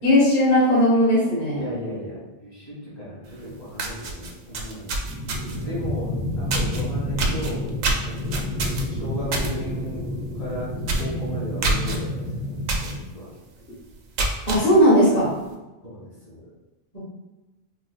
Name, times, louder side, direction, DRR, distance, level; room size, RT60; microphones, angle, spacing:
voice 1, 0.0-1.6 14.5-15.3 16.9-17.0, equal, 40° left, -8 dB, 1.1 m, -17 dB
voice 2, 1.5-5.0 5.5-7.7 8.0-8.4 8.9-10.1 10.3-13.3 15.8-16.4, left 1 dB, 65° left, -7 dB, 1.8 m, -36 dB
sound 1, 3.3-3.4 3.7-5.7 6.5-6.8 7.2-9.5 9.9-10.1 10.4-10.5 10.8-11.1 11.6-12.0 12.7-12.9 13.4-13.5 14.0-14.6, right 3 dB, 90° right, 0.9 m, -26 dB
sound 2, 5.0-13.0, left 1 dB, 40° right, 0.7 m, -29 dB
4.7 x 2.4 x 2.3 m, 1.1 s
omnidirectional pair, 1.2 m